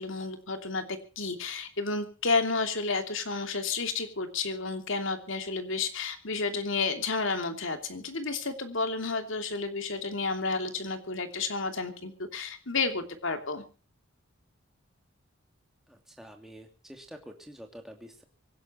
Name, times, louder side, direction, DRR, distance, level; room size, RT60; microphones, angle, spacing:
voice 1, 0.0-13.6, left 4 dB, 65° left, 7 dB, 2.9 m, -31 dB
voice 2, 15.9-18.2, equal, ahead, 3 dB, 2.8 m, -48 dB
25.0 x 11.0 x 4.4 m, 0.37 s
head